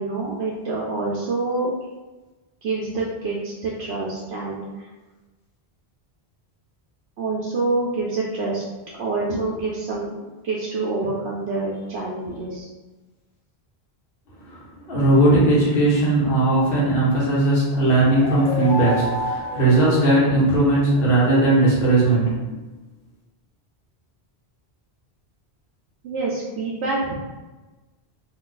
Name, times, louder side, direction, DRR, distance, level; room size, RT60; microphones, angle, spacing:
voice 1, 0.0-1.7 2.6-4.9 7.2-8.6 9.0-12.7 26.0-27.1, right 3 dB, 85° right, -5 dB, 0.8 m, -27 dB
voice 2, 14.9-22.4, right 2 dB, 60° left, -6 dB, 1.3 m, -18 dB
sound 1, 17.8-20.7, left 2 dB, 85° left, 1.0 m, -29 dB
2.7 x 2.4 x 3.8 m, 1.2 s
omnidirectional pair, 1.1 m